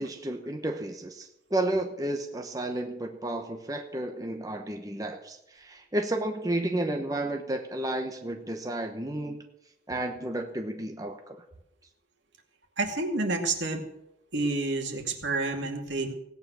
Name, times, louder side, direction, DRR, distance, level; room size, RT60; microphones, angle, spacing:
voice 1, 0.0-9.4 9.9-11.4, right 1 dB, 20° right, 4 dB, 1.0 m, -32 dB
voice 2, 12.8-13.8 14.3-16.1, right 3 dB, 75° right, 3 dB, 2.4 m, -29 dB
17.0 x 9.5 x 6.3 m, 0.83 s
head